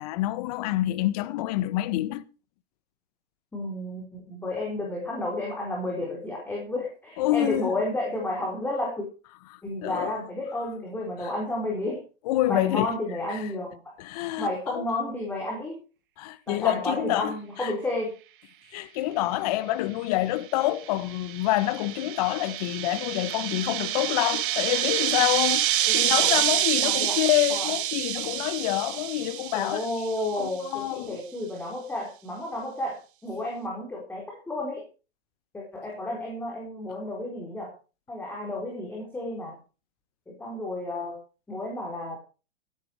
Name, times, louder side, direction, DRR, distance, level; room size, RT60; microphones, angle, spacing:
voice 1, 0.0-2.2 7.2-7.7 9.5-10.2 11.2-11.3 12.3-13.0 13.3-13.5 14.0-14.9 16.2-17.7 18.7-29.8 30.4-31.2, left 15 dB, 40° left, 1.1 m, -27 dB
voice 2, 3.5-9.1 9.6-12.0 12.5-13.8 14.4-15.8 16.5-18.1 25.9-26.4 26.8-27.2 27.5-27.7 29.5-34.8 35.5-37.7 38.1-39.5 40.3-41.2 41.5-42.2, left 1 dB, 5° left, 4.4 m, -32 dB
sound 1, 20.6-30.4, right 12 dB, 60° right, 1.5 m, -27 dB
16.0 x 11.0 x 4.7 m
hypercardioid pair, 150°, 30 cm